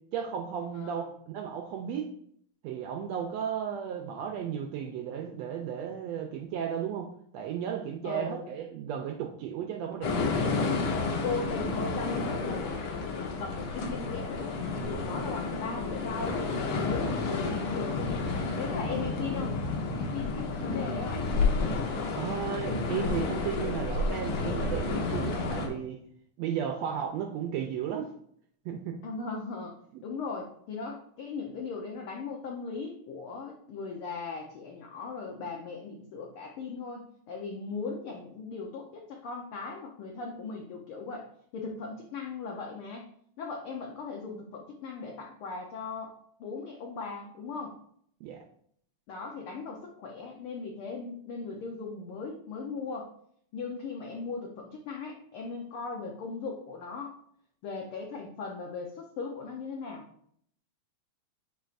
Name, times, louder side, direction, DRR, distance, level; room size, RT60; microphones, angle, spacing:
voice 1, 0.1-1.1 1.3-2.1 2.6-7.1 7.3-10.3 22.2-26.0 26.4-28.1 28.6-29.0 29.9-30.0 48.2-48.4, right 8 dB, 80° right, 3 dB, 1.6 m, -34 dB
voice 2, 0.7-1.1 8.0-8.5 11.0-16.4 16.6-19.5 20.0-21.2 29.0-43.1 43.4-47.8 49.1-53.1 53.5-57.1 57.6-60.0, left 4 dB, 75° left, 0 dB, 1.2 m, -38 dB
sound 1, 10.0-25.7, left 3 dB, 60° left, 1.7 m, -31 dB
9.3 x 4.6 x 2.5 m, 0.66 s
omnidirectional pair, 3.4 m